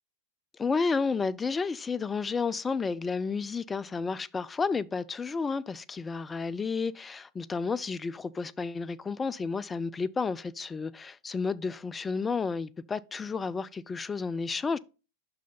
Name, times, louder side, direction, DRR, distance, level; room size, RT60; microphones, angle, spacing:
voice 1, 0.6-14.8, left 4 dB, 15° left, 0.3 m, -31 dB
5.7 x 4.8 x 5.5 m
figure-of-eight pair, 90°, 0 cm